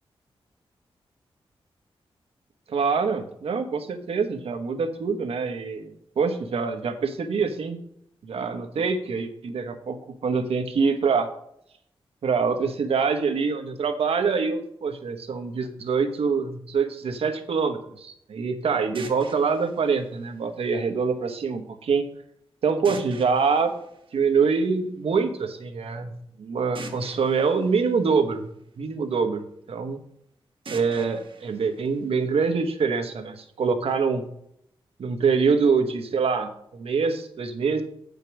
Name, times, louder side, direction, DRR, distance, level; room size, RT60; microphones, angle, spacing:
voice 1, 2.7-7.8 8.2-10.0 10.2-11.3 12.2-22.1 22.6-23.7 24.1-26.1 26.4-29.4 29.7-30.0 30.7-34.2 35.0-37.8, right 5 dB, 90° right, 7 dB, 1.1 m, -25 dB
sound 1, 18.9-21.0 22.8-24.8 26.7-29.0 30.6-32.7, right 3 dB, 60° right, 1.3 m, -44 dB
9.0 x 5.2 x 6.2 m, 0.72 s
wide cardioid pair, 130°, 10 cm